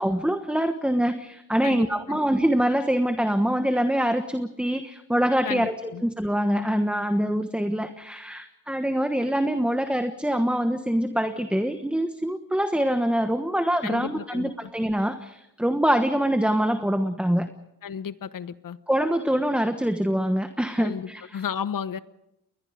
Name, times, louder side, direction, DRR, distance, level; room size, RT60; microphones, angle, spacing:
voice 1, 0.0-17.5 18.9-21.4, equal, 5° right, 8 dB, 1.3 m, -24 dB
voice 2, 1.6-2.2 5.4-6.0 13.8-14.7 17.8-18.8 20.8-22.0, left 7 dB, 55° left, 14 dB, 1.1 m, -33 dB
30.0 x 22.0 x 5.1 m, 0.88 s
cardioid pair, 110°, 39 cm